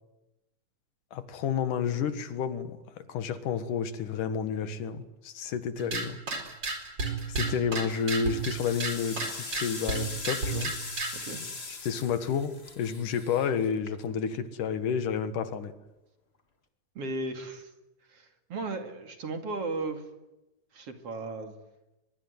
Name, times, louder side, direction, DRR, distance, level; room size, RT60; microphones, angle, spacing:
voice 1, 1.1-6.2 7.3-10.7 11.8-15.7, left 7 dB, 75° left, 11 dB, 3.1 m, -30 dB
sound 1, 5.8-11.3, right 3 dB, 35° right, 5.1 m, -33 dB
sound 2, 7.2-7.6 8.1-14.3, left 3 dB, 25° left, 1.6 m, -41 dB
voice 2, 11.1-11.5 16.9-17.7 18.1-20.0 20.7-21.5, right 3 dB, 50° right, 6 dB, 3.1 m, -36 dB
23.0 x 22.5 x 9.5 m, 0.96 s
omnidirectional pair, 3.7 m